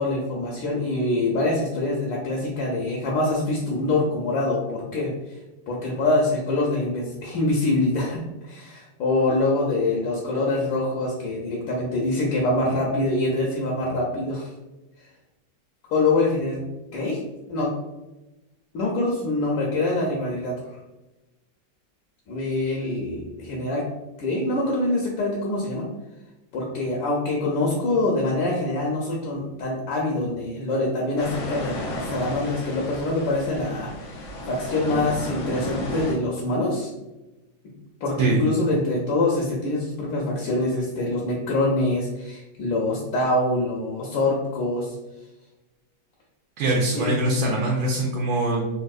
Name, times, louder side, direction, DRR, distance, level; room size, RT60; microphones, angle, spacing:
voice 1, 0.0-5.1 5.7-14.5 15.9-16.6 16.9-17.2 17.5-17.7 18.7-20.5 22.3-23.8 24.2-25.8 26.5-36.9 38.0-44.9 46.9-47.2, left 2 dB, 75° left, -2 dB, 1.3 m, -25 dB
sound 1, 31.2-36.1, left 1 dB, 90° left, 0.7 m, -33 dB
voice 2, 46.6-48.6, right 2 dB, 75° right, -2 dB, 1.3 m, -23 dB
3.5 x 2.6 x 2.3 m, 1.0 s
omnidirectional pair, 2.2 m